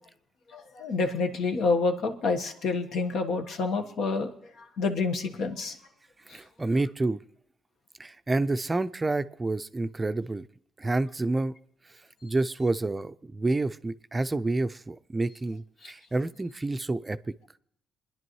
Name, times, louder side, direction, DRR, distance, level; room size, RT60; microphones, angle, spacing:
voice 1, 0.5-4.3 4.8-5.7, left 4 dB, 75° left, 5 dB, 1.2 m, -28 dB
voice 2, 6.3-7.2 8.0-10.4 10.8-11.5 12.2-17.2, right 2 dB, 20° right, 11 dB, 0.4 m, -29 dB
28.0 x 10.5 x 3.1 m, 0.72 s
cardioid pair, 90°, 0 cm